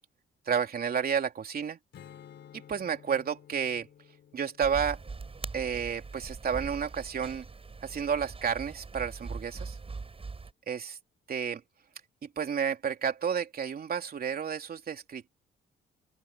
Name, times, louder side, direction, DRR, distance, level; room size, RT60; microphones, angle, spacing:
voice 1, 0.5-1.8 2.7-3.9 4.3-5.0 5.5-7.4 7.8-9.8 10.7-11.0 11.3-11.6 12.2-15.3, right 7 dB, 50° right, 3.2 m, -31 dB
Strum, 1.9-7.3, left 9 dB, 65° left, 4.0 m, -55 dB
sound 1, 4.6-10.5, right 4 dB, 30° right, 6.5 m, -41 dB
open air
cardioid pair, 90°, 20 cm